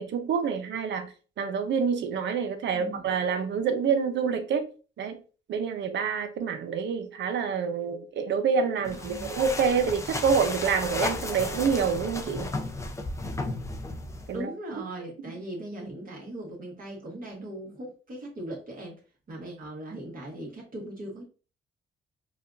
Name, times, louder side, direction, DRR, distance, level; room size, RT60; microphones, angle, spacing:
voice 1, 0.0-4.7 5.0-5.2 5.5-12.5 14.3-14.5, right 6 dB, 65° right, 0.7 m, -27 dB
voice 2, 2.7-3.1 8.8-9.4 14.3-19.0 19.3-21.2, right 1 dB, 45° right, 1.6 m, -39 dB
sound 1, 8.8-14.4, left 2 dB, 15° left, 0.6 m, -34 dB
4.8 x 2.4 x 2.6 m
cardioid pair, 90°, 20 cm